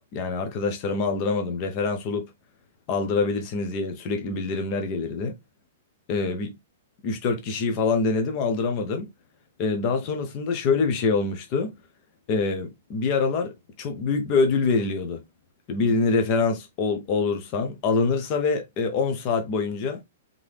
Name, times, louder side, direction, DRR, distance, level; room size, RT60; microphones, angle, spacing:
voice 1, 0.1-2.3 2.9-5.3 6.1-6.6 7.0-9.1 9.6-11.7 12.3-15.2 15.7-20.0, left 4 dB, 30° left, 0.9 m, -25 dB
3.8 x 3.7 x 3.3 m
hypercardioid pair, 170°, 0 cm